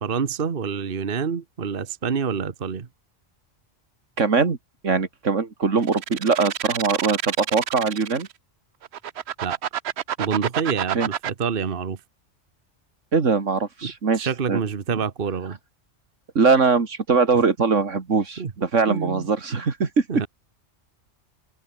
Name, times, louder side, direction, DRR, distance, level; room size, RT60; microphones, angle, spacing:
voice 1, 0.0-2.9 9.4-9.6 10.2-12.0 13.8-15.6 18.4-18.5 18.9-19.3 20.1-20.3, right 6 dB, 45° right, 1.3 m, -27 dB
voice 2, 4.2-4.6 4.8-8.3 10.9-11.1 13.1-14.6 16.4-20.0, right 4 dB, 80° right, 2.4 m, -21 dB
sound 1, 5.8-8.3 8.8-11.3, right 10 dB, 65° right, 1.0 m, -28 dB
open air
omnidirectional pair, 1.3 m